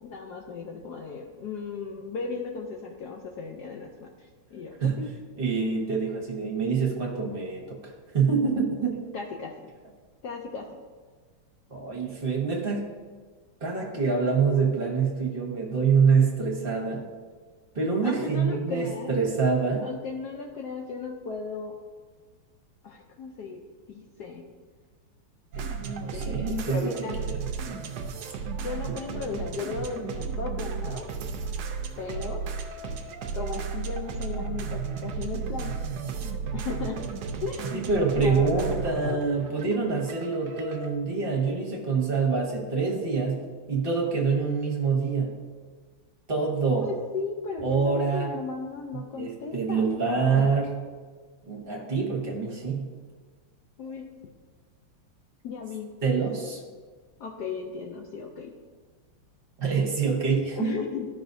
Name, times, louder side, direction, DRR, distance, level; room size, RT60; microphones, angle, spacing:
voice 1, 0.0-5.1 9.1-9.5 10.2-10.7 18.0-19.1 19.8-21.7 22.8-23.6 23.9-24.4 25.6-25.7 26.1-27.2 28.6-31.1 32.0-32.4 33.3-35.8 36.5-37.0 37.4-39.2 46.8-50.5 53.8-54.1 55.4-55.9 57.2-58.5 60.5-61.1, left 4 dB, 75° left, 1 dB, 0.9 m, -36 dB
voice 2, 5.4-9.0 11.7-12.8 13.6-17.1 17.7-19.9 25.8-26.9 27.3-27.4 27.7-27.8 37.9-45.4 46.3-46.9 47.6-48.3 49.1-50.7 51.5-52.9 56.0-56.6 59.6-60.8, right 5 dB, 35° right, -1 dB, 1.0 m, -26 dB
sound 1, 25.5-40.9, right 5 dB, 70° right, 0.9 m, -34 dB
13.5 x 5.4 x 2.7 m, 1.5 s
omnidirectional pair, 2.4 m